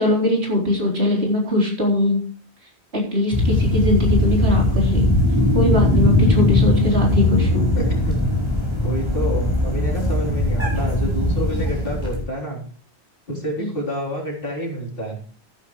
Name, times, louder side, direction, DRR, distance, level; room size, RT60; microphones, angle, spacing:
voice 1, 0.0-2.2 2.9-5.1 5.5-7.7 13.6-13.7, left 1 dB, 65° right, -2 dB, 4.3 m, -21 dB
sound 1, 3.3-12.2, left 1 dB, 25° right, 4.7 m, -19 dB
voice 2, 7.8-8.2 8.8-12.6 13.3-15.2, equal, 55° left, -1 dB, 3.9 m, -28 dB
15.5 x 9.9 x 3.2 m, 0.43 s
omnidirectional pair, 1.1 m